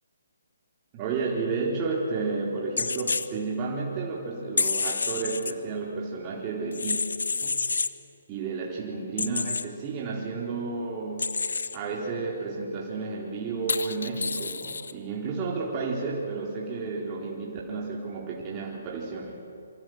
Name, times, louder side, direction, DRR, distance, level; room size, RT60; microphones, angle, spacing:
voice 1, 0.9-7.0 7.4-7.6 8.3-11.4 11.7-19.4, right 4 dB, 25° right, -3 dB, 4.1 m, -32 dB
sound 1, 2.8-3.3 4.6-5.5 6.7-7.9 9.2-9.6 11.2-11.8 13.7-14.9, left 4 dB, 70° left, 1.3 m, -28 dB
27.0 x 26.0 x 7.9 m, 2.7 s
figure-of-eight pair, 140°, 0 cm